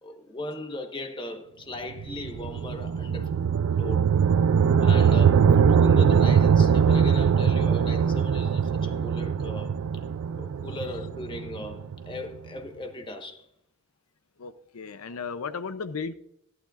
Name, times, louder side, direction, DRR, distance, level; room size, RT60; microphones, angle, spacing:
voice 1, 0.0-3.4 3.7-4.2 4.8-9.8 10.3-13.5, left 1 dB, 20° left, 1.2 m, -38 dB
sound 1, 1.9-12.2, right 7 dB, 85° right, 0.4 m, -22 dB
voice 2, 14.4-16.1, left 5 dB, 75° left, 0.6 m, -35 dB
14.5 x 11.5 x 2.5 m
head